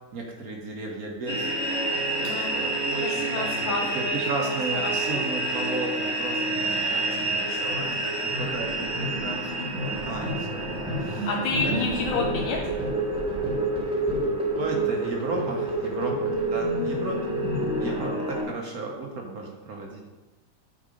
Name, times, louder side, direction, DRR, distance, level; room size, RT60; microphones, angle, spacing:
voice 1, 0.1-1.5 2.2-11.3 11.6-11.9 14.5-17.4 17.7-20.0, right 3 dB, 55° right, 0 dB, 1.3 m, -34 dB
sound 1, 1.3-18.4, right 2 dB, 5° right, 1.2 m, -28 dB
voice 2, 3.0-5.2 11.3-12.6, left 4 dB, 80° left, 0 dB, 1.4 m, -30 dB
7.4 x 4.3 x 5.0 m, 1.1 s
omnidirectional pair, 2.1 m